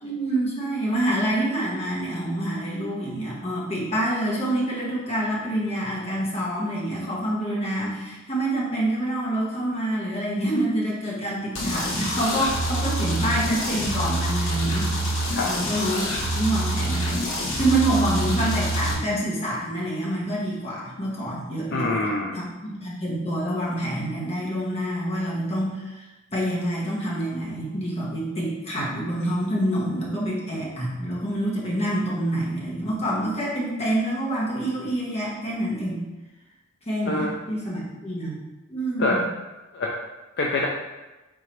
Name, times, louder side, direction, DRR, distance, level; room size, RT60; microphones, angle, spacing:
voice 1, 0.0-14.9 15.2-16.1 16.3-22.0 22.6-36.0 36.9-38.3 38.7-39.2, right 1 dB, 30° left, -5 dB, 1.2 m, -27 dB
sound 1, 11.5-18.9, right 1 dB, 80° left, 1.0 m, -26 dB
voice 2, 21.7-22.4 37.1-37.3 39.0-39.2 39.7-40.0 40.4-40.7, left 2 dB, 55° left, -2 dB, 0.4 m, -25 dB
3.7 x 3.0 x 4.5 m, 1.1 s
head